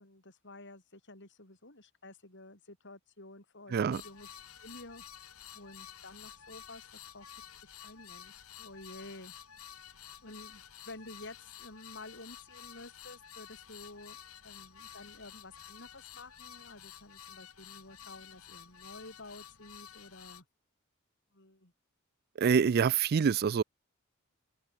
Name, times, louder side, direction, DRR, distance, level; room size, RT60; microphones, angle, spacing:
voice 1, 0.0-4.3 4.6-5.1 5.5-7.3 7.6-9.3 10.2-20.5 21.3-21.7, left 2 dB, 55° left, 6.8 m, -51 dB
voice 2, 3.7-4.0 22.4-23.6, right 6 dB, 45° right, 0.3 m, -26 dB
sound 1, 3.9-20.4, left 9 dB, 80° left, 5.1 m, -51 dB
head